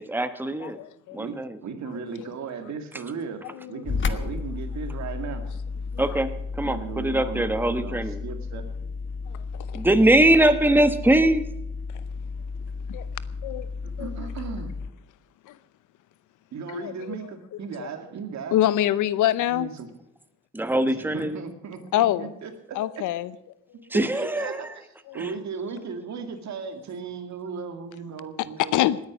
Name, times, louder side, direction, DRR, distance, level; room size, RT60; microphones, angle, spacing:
voice 1, 0.0-0.8 1.1-1.6 6.0-8.2 9.7-11.4 20.5-21.4 23.9-24.6 25.2-25.3, right 1 dB, 5° right, 10 dB, 1.2 m, -22 dB
voice 2, 0.6-1.2 2.2-2.3 3.6-3.8 4.2-4.3 5.9-6.0 9.3-9.8 12.9-13.1 13.4-13.7 14.0-14.1 15.5-15.6 16.7-17.2 17.8-17.9 18.5-19.7 21.9-22.3 22.7-23.3 25.1-25.2 28.7-29.0, left 13 dB, 85° left, 17 dB, 0.8 m, -25 dB
voice 3, 1.1-3.4 3.7-5.5 6.6-8.6 13.8-14.8 16.5-18.6 19.5-19.9 20.9-23.0 24.1-24.9 25.1-28.8, right 5 dB, 65° right, 6 dB, 2.4 m, -36 dB
sound 1, 3.8-14.9, left 4 dB, 40° left, 1.2 m, -33 dB
19.0 x 9.6 x 6.3 m, 0.79 s
cardioid pair, 90°, 30 cm